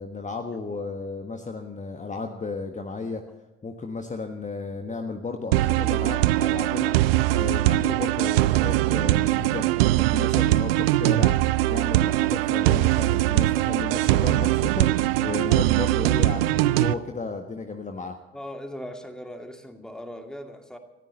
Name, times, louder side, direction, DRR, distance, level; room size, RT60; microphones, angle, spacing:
voice 1, 0.0-3.2 3.6-9.7 10.0-11.3 11.7-18.2, left 3 dB, 25° left, 5 dB, 1.4 m, -34 dB
sound 1, 5.5-16.9, right 16 dB, 70° right, 0.6 m, -21 dB
voice 2, 18.3-20.8, equal, ahead, 5 dB, 2.3 m, -39 dB
19.0 x 14.5 x 4.1 m, 1.1 s
figure-of-eight pair, 45°, 31 cm